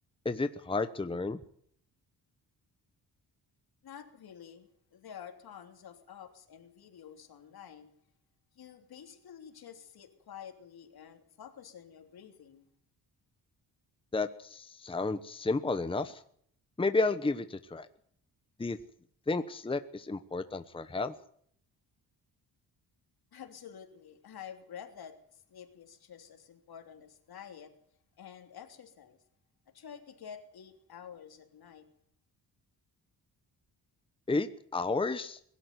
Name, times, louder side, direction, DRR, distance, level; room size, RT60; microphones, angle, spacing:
voice 1, 0.2-1.4 14.1-16.2 16.8-17.9 18.6-18.8 19.3-21.1 34.3-35.4, left 3 dB, 15° left, 10 dB, 1.0 m, -32 dB
voice 2, 3.8-7.9 8.5-12.7 23.3-27.7 28.2-29.2 29.7-31.8, left 8 dB, 70° left, 6 dB, 3.3 m, -49 dB
22.0 x 12.5 x 9.5 m, 0.64 s
cardioid pair, 125°, 39 cm